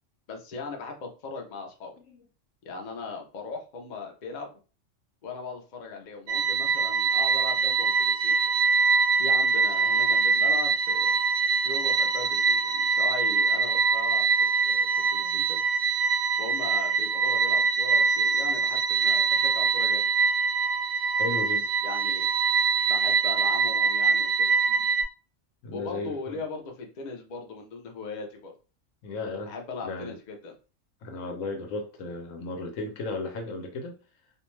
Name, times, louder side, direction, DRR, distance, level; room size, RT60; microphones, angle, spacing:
voice 1, 0.3-1.9 2.6-4.5 5.2-8.5 9.2-11.2 11.6-15.6 16.4-20.1 21.8-22.3 22.9-24.5 25.7-28.5 29.5-30.5, left 4 dB, 50° left, 3 dB, 0.6 m, -38 dB
sound 1, 6.3-25.0, right 5 dB, 85° right, 1.0 m, -24 dB
voice 2, 21.2-21.7 24.7-24.8 25.6-26.4 29.0-29.5 29.8-30.2 31.0-34.0, left 3 dB, 85° left, 4 dB, 1.1 m, -35 dB
2.5 x 2.2 x 3.0 m, 0.34 s
omnidirectional pair, 1.3 m